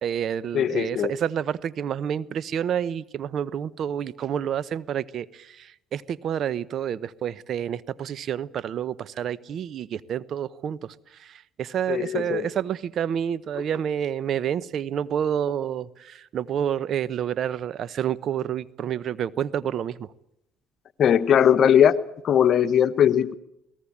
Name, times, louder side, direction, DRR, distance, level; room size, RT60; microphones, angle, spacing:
voice 1, 0.0-20.1, right 9 dB, 55° right, 0.9 m, -29 dB
voice 2, 0.5-1.1 11.9-12.5 21.0-22.0 22.2-23.3, left 9 dB, 55° left, 1.1 m, -19 dB
22.5 x 18.5 x 8.6 m
supercardioid pair, 75°, 0 cm